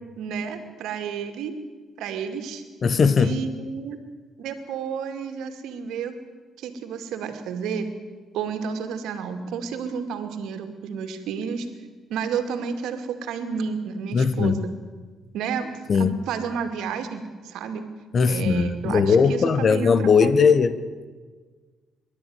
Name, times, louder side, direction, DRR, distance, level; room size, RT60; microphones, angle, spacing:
voice 1, 0.0-1.5 2.0-2.6 3.2-4.0 4.4-6.1 6.6-7.9 8.3-11.7 12.1-14.7 15.3-17.8 18.3-20.5, right 6 dB, 85° right, 2.3 m, -31 dB
voice 2, 2.8-3.4 14.1-14.7 15.9-16.1 18.1-21.0, left 5 dB, 45° left, 1.2 m, -19 dB
23.5 x 12.0 x 9.5 m
cardioid pair, 90°, 0 cm